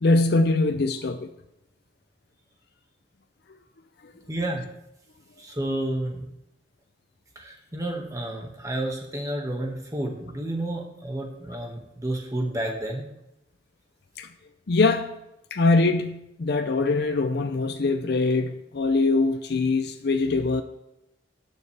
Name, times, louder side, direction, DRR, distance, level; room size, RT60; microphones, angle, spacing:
voice 1, 0.0-1.3 14.2-14.3 14.7-15.2 15.5-20.6, left 3 dB, 55° left, 8 dB, 0.5 m, -23 dB
voice 2, 4.3-4.6 5.4-6.3 7.4-13.0, right 1 dB, 15° right, 0 dB, 1.7 m, -30 dB
19.0 x 6.5 x 3.4 m, 0.87 s
head